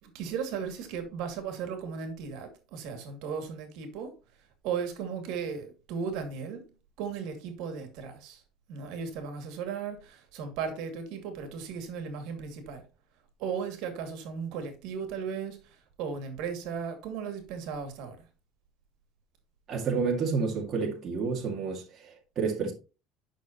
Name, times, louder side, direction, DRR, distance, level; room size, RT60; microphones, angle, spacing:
voice 1, 0.0-4.1 4.6-6.6 7.0-8.4 8.7-12.8 13.4-18.3, right 6 dB, 70° right, 2.4 m, -36 dB
voice 2, 19.7-22.7, right 5 dB, 35° right, 2.1 m, -30 dB
10.0 x 6.3 x 3.0 m
cardioid pair, 125°, 0 cm